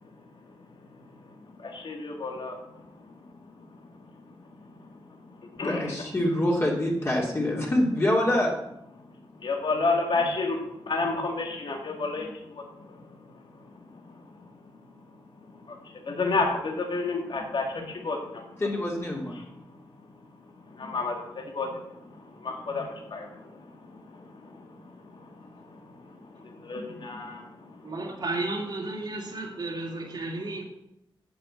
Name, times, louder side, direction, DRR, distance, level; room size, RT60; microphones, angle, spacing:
voice 1, 1.7-2.5 5.6-5.9 9.4-10.6 10.9-12.3 16.1-18.2 20.8-21.1 21.6-21.7 22.4-22.8 23.1-23.3 26.7-27.4, left 3 dB, 60° left, 1 dB, 2.0 m, -29 dB
voice 2, 5.6-8.5 18.6-19.4, left 1 dB, 30° left, -3 dB, 2.7 m, -25 dB
voice 3, 27.8-30.6, right 2 dB, 50° right, -1 dB, 2.2 m, -33 dB
9.3 x 8.8 x 7.9 m, 0.83 s
wide cardioid pair, 175°, 9 cm